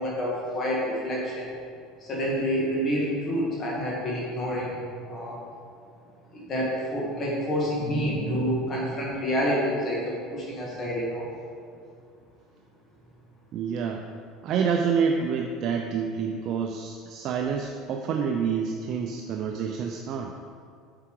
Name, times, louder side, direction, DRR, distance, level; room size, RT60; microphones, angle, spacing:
voice 1, 0.0-1.5 2.0-5.4 6.3-11.3, equal, 35° left, -4 dB, 1.8 m, -28 dB
voice 2, 13.5-14.0 14.4-20.3, right 6 dB, 50° right, 2 dB, 0.5 m, -28 dB
7.4 x 5.8 x 4.7 m, 2.3 s
supercardioid pair, 125°, 0 cm